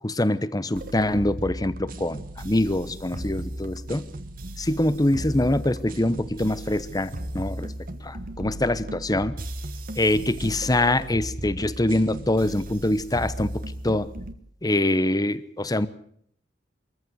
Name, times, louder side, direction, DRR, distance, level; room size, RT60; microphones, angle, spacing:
voice 1, 0.0-4.1 4.6-7.7 8.0-9.4 10.0-14.1 14.6-15.9, left 1 dB, 20° left, 15 dB, 1.0 m, -24 dB
sound 1, 0.7-14.3, right 1 dB, 50° right, 1.5 m, -36 dB
23.5 x 14.5 x 8.0 m, 0.66 s
head